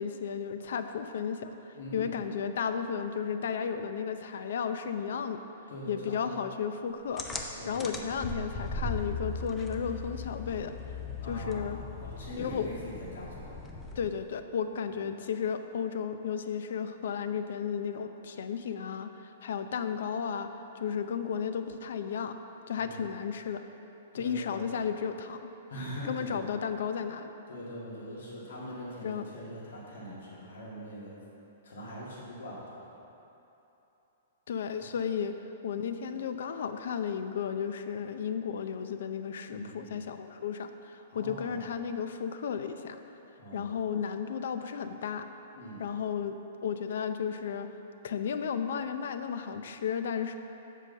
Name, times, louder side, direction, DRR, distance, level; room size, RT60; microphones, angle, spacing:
voice 1, 0.0-5.4 5.9-7.3 7.7-10.7 11.3-11.8 12.4-12.7 14.0-22.4 22.7-23.6 24.1-25.5 26.0-27.3 29.0-29.2 34.5-35.3 35.6-43.0 43.5-45.3 45.8-47.7 48.0-50.4, left 7 dB, 65° left, 9 dB, 0.5 m, -34 dB
voice 2, 1.7-2.1 5.7-6.4 7.6-8.1 11.2-11.7 12.0-13.6 14.9-15.1 22.8-23.1 24.1-24.7 25.7-26.5 27.5-31.2 31.6-32.7 34.8-34.9 39.5-40.0 41.1-41.6 43.4-43.7 45.5-45.8, equal, 85° left, -6 dB, 2.0 m, -42 dB
sound 1, 7.2-14.3, left 3 dB, 10° left, 0.5 m, -39 dB
7.6 x 4.9 x 6.5 m, 3.0 s
hypercardioid pair, 165°, 0 cm